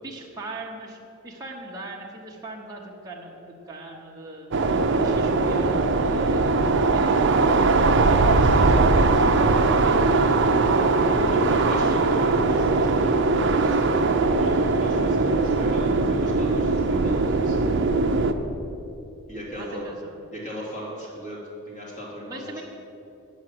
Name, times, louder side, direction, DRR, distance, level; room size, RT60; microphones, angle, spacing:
voice 1, 0.0-1.0 1.2-4.5 4.9-6.5 6.9-9.3 9.8-10.3 11.6-12.0 19.5-20.2 22.3-22.6, right 1 dB, 15° right, -3 dB, 0.9 m, -39 dB
sound 1, 4.5-18.3, right 3 dB, 55° right, 0.5 m, -20 dB
voice 2, 8.3-8.9 11.0-11.8 12.1-17.7 19.3-19.9 20.3-21.4 21.7-22.6, equal, 35° left, -5 dB, 2.6 m, -37 dB
8.7 x 6.2 x 7.7 m, 2.7 s
head